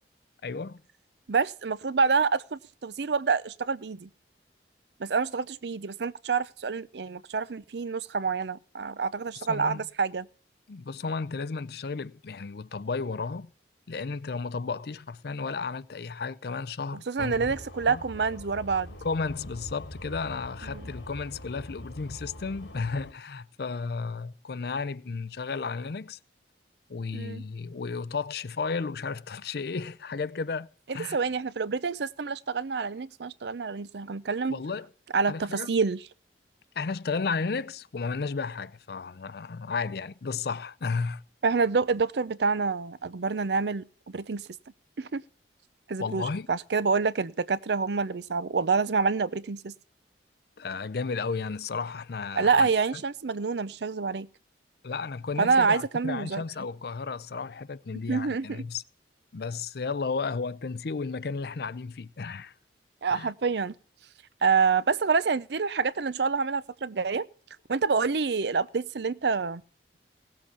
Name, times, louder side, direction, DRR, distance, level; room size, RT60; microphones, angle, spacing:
voice 1, 0.4-0.8 9.3-9.8 10.7-13.5 13.9-17.6 17.9-18.0 19.0-26.2 26.9-30.7 30.9-31.2 34.5-34.9 35.3-35.7 36.8-41.2 46.0-46.5 50.6-52.7 54.8-58.8 59.3-62.5 63.1-63.3, left 4 dB, 60° left, 0.5 m, -33 dB
voice 2, 1.3-4.1 5.0-10.3 17.1-18.9 20.7-20.9 27.1-27.4 31.1-34.6 35.1-36.0 41.4-44.5 45.0-45.2 45.9-49.7 52.4-54.3 55.4-56.4 58.1-58.6 63.0-63.7 64.4-67.3 67.7-69.6, right 5 dB, 70° right, 0.6 m, -27 dB
sound 1, 17.2-23.1, left 1 dB, 75° left, 2.6 m, -43 dB
17.5 x 7.6 x 5.8 m
head